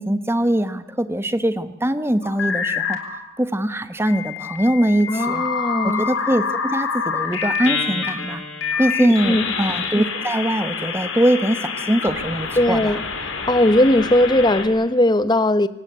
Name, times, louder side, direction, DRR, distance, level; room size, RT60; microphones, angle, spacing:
voice 1, 0.0-3.0 3.4-5.4 5.8-8.4 8.8-13.0, right 1 dB, 10° right, 1.2 m, -22 dB
sound 1, 2.2-3.2 4.1-14.7, left 5 dB, 65° left, 4.0 m, -27 dB
voice 2, 5.1-6.0 9.0-9.5 12.6-13.0 13.5-15.7, left 1 dB, 20° left, 0.9 m, -18 dB
26.0 x 18.5 x 8.2 m
head